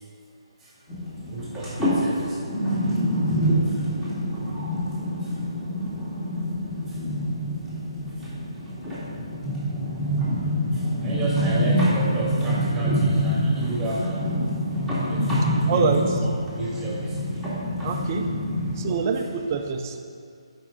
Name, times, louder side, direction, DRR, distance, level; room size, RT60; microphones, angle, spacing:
sound 1, 0.9-19.0, equal, 5° left, 2.2 m, -26 dB
voice 1, 1.2-2.6 3.6-3.8 5.2-5.3 6.9-7.0 10.1-10.3 10.7-14.5 15.0-17.3 17.9-18.0, right 2 dB, 10° right, -6 dB, 1.9 m, -32 dB
voice 2, 15.7-16.0 17.8-18.3 18.8-20.0, right 5 dB, 30° right, 4 dB, 0.6 m, -25 dB
13.0 x 5.4 x 3.8 m, 2.3 s
figure-of-eight pair, 150°, 3 cm